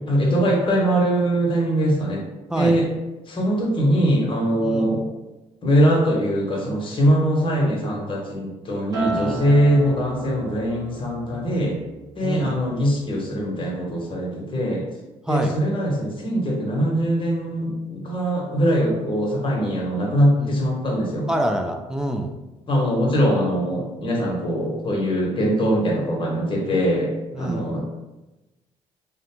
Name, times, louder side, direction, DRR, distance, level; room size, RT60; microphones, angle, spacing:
voice 1, 0.1-2.2 2.5-2.9 3.3-5.0 5.6-11.8 12.2-14.8 15.3-21.3 22.7-27.8, equal, 40° left, -2 dB, 0.9 m, -22 dB
Acoustic guitar, 8.9-13.4 13.7-14.1, right 3 dB, 30° right, 0.9 m, -34 dB
voice 2, 9.2-9.5 9.7-9.9 12.2-12.5 15.3-15.6 20.4-20.5 21.3-22.3 27.3-27.7, right 1 dB, 5° right, 3 dB, 0.4 m, -26 dB
2.4 x 2.1 x 2.9 m, 1.1 s
supercardioid pair, 75°, 13 cm